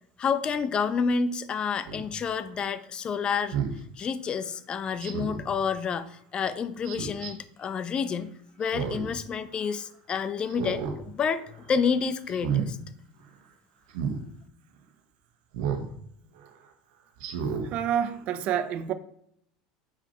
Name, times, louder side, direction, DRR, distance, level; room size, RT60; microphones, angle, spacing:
voice 1, 0.2-3.6 4.0-8.3 8.6-12.8, left 6 dB, 35° left, 0.7 m, -29 dB
Speech synthesizer, 1.9-2.0 3.5-3.8 5.0-5.5 6.8-7.3 8.6-9.1 9.5-9.6 10.5-11.0 11.4-11.7 12.3-12.7 13.9-14.2 15.5-15.9 16.4-16.5 17.2-17.7 18.1-18.2, right 7 dB, 70° right, 1.3 m, -31 dB
voice 2, 17.6-18.9, right 9 dB, 55° right, 0.8 m, -28 dB
7.4 x 4.9 x 4.3 m
hypercardioid pair, 90°, 3 cm